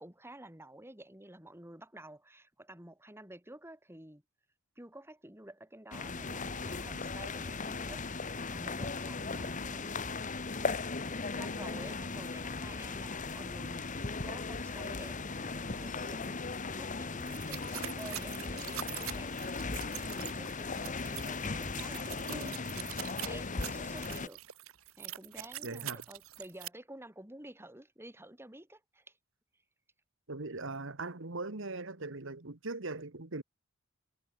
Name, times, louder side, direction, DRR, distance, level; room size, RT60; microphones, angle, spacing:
voice 1, 0.0-4.2 4.8-10.0 10.6-10.8 11.3-24.4 25.0-29.2, right 1 dB, 10° right, 4.3 m, -51 dB
sound 1, 5.9-24.3, left 4 dB, 35° left, 1.3 m, -37 dB
sound 2, 17.2-26.7, right 13 dB, 80° right, 1.0 m, -44 dB
voice 2, 22.3-22.6 25.6-26.0 30.3-33.4, right 3 dB, 65° right, 1.7 m, -40 dB
head